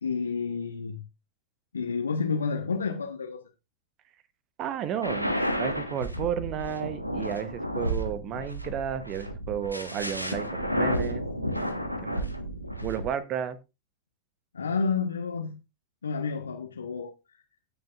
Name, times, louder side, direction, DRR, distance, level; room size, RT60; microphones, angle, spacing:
voice 1, 0.0-1.0 1.7-3.5 14.5-15.6 16.0-17.1, left 5 dB, 75° left, 1.2 m, -30 dB
voice 2, 4.6-11.2 11.5-12.2 12.8-13.6, right 9 dB, 35° right, 1.1 m, -33 dB
sound 1, 5.0-13.1, equal, 90° right, 1.3 m, -31 dB
17.0 x 6.6 x 2.5 m
figure-of-eight pair, 90°, 0 cm